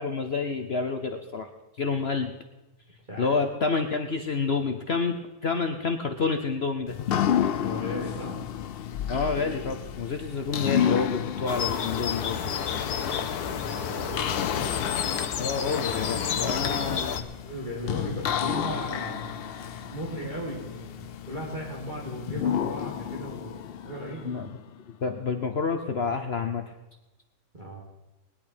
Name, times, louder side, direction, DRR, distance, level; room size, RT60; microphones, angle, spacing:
voice 1, 0.0-1.5 1.8-2.3 3.2-7.0 9.1-12.4 15.4-17.2 24.2-24.5 25.0-26.6, left 4 dB, 50° left, 6 dB, 1.0 m, -28 dB
sound 1, 6.9-24.7, left 9 dB, 70° left, 0.5 m, -32 dB
voice 2, 7.6-8.4 13.6-14.7 16.5-16.8 17.4-24.3 27.5-27.8, equal, 30° right, -4 dB, 2.4 m, -37 dB
Birds twitter, 11.5-17.2, left 8 dB, 85° left, 1.4 m, -30 dB
20.0 x 10.5 x 4.4 m, 1.0 s
omnidirectional pair, 1.6 m